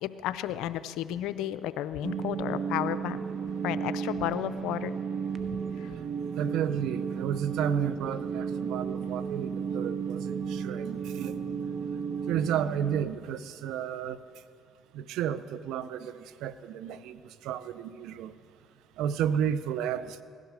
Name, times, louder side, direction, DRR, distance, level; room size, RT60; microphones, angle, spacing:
voice 1, 0.0-3.3 3.6-4.9 5.8-5.9, left 12 dB, 80° left, 14 dB, 0.5 m, -32 dB
sound 1, 2.0-13.0, right 6 dB, 50° right, 0.9 m, -33 dB
voice 2, 6.3-11.3 12.3-14.2 14.9-18.3 19.0-20.2, right 9 dB, 80° right, 14 dB, 0.6 m, -32 dB
17.0 x 12.0 x 6.3 m, 2.3 s
supercardioid pair, 70°, 0 cm